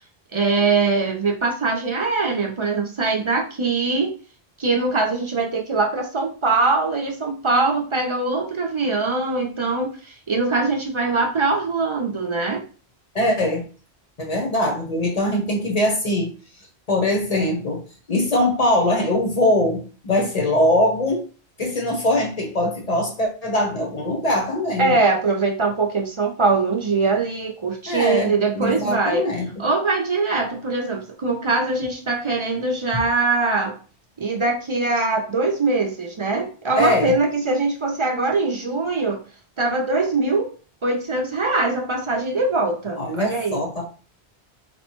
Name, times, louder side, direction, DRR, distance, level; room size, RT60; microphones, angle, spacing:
voice 1, 0.3-4.1 4.6-12.6 24.8-29.3 29.6-33.8 34.2-39.2 39.6-40.5 40.8-43.6, right 3 dB, 40° right, 1 dB, 0.4 m, -22 dB
voice 2, 13.1-13.7 14.2-16.3 16.9-17.8 18.1-21.2 21.6-24.9 27.9-29.5 36.8-37.2 43.0-43.8, left 1 dB, 40° left, 1 dB, 0.8 m, -22 dB
4.2 x 2.1 x 2.9 m, 0.38 s
omnidirectional pair, 1.1 m